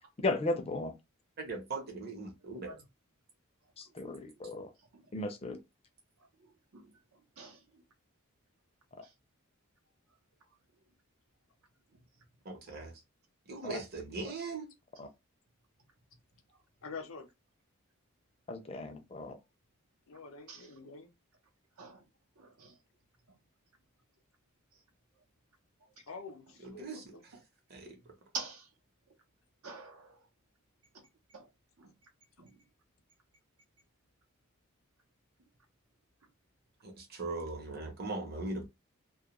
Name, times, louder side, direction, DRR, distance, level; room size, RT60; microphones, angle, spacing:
voice 1, 0.2-0.9 3.8-4.7 5.1-5.6 13.6-13.8 15.0-15.1 18.5-19.4, left 2 dB, 25° left, 0.4 m, -35 dB
voice 2, 1.4-2.8 12.4-13.0 13.5-14.7 26.6-27.1 27.7-28.0 36.8-38.6, right 3 dB, 45° right, 0.8 m, -40 dB
voice 3, 4.8-5.1 6.4-7.8 9.0-9.1 10.5-10.6 11.9-12.0 16.5-16.6 18.8-18.9 20.5-20.8 21.8-22.1 22.4-22.8 28.3-28.7 29.6-30.2 30.9-31.5 31.8-31.9 32.4-32.6, right 4 dB, 85° right, 0.7 m, -47 dB
voice 4, 16.8-17.2 20.1-21.1 26.1-27.2, left 4 dB, 70° left, 0.6 m, -46 dB
2.3 x 2.2 x 2.9 m
head